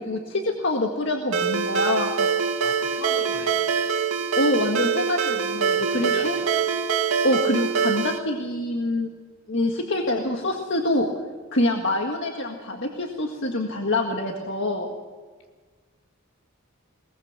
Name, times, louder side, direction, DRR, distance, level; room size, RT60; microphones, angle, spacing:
voice 1, 0.0-2.3 4.4-6.4 7.2-9.1 9.5-11.2 11.5-15.0, left 1 dB, 60° left, 2 dB, 1.8 m, -25 dB
Ringtone, 1.3-8.2, right 6 dB, 85° right, 2.2 m, -24 dB
voice 2, 2.6-3.6 5.9-6.5, left 2 dB, 75° left, 0 dB, 4.2 m, -38 dB
22.5 x 19.5 x 6.1 m, 1.4 s
head